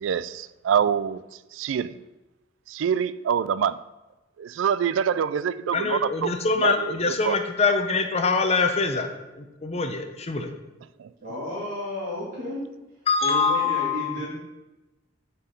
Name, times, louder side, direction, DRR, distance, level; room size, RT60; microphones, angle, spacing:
voice 1, 0.0-1.2 1.6-2.0 2.7-3.8 4.4-6.3 6.6-6.9 7.2-7.4 11.0-11.1, right 8 dB, 80° right, 17 dB, 0.3 m, -25 dB
voice 2, 5.7-9.1 9.3-10.5 13.1-14.2, left 4 dB, 35° left, 6 dB, 0.6 m, -24 dB
voice 3, 11.2-12.7 13.2-14.3, left 1 dB, 45° right, -9 dB, 2.2 m, -32 dB
7.2 x 4.5 x 5.2 m, 1.0 s
head